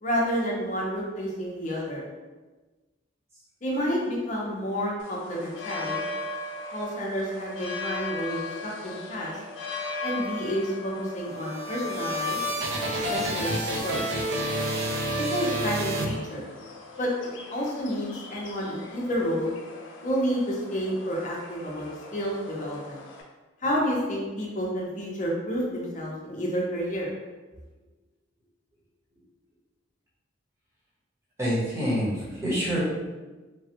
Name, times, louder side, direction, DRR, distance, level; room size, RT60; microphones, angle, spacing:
voice 1, 0.0-2.0 3.6-6.0 6.7-9.4 10.0-12.4 13.1-13.5 13.8-14.0 15.2-16.4 17.0-19.5 20.0-23.0 23.6-27.1, equal, 40° left, -3 dB, 0.6 m, -30 dB
sound 1, 5.0-23.2, left 2 dB, 90° left, 0.5 m, -39 dB
sound 2, 11.1-16.7, right 1 dB, 70° right, 0.5 m, -29 dB
voice 2, 31.4-32.8, equal, 15° right, -9 dB, 0.9 m, -26 dB
3.2 x 2.2 x 2.8 m, 1.2 s
head